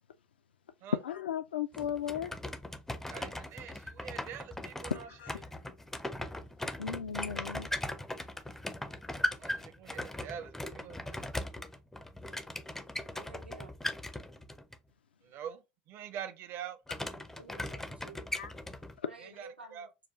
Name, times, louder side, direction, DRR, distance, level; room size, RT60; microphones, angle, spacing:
voice 1, 1.0-2.3 4.9-5.4 6.8-7.7 18.4-18.5, left 8 dB, 75° left, 0.3 m, -36 dB
sound 1, 1.7-14.8 16.9-19.0, left 1 dB, 5° left, 0.4 m, -39 dB
voice 2, 3.1-5.1 9.4-11.3 15.2-16.8 19.2-19.9, right 9 dB, 45° right, 0.5 m, -45 dB
voice 3, 13.1-13.7 17.4-18.2 19.0-19.9, right 3 dB, 90° right, 0.7 m, -51 dB
5.7 x 2.3 x 2.3 m
figure-of-eight pair, 75°, 5 cm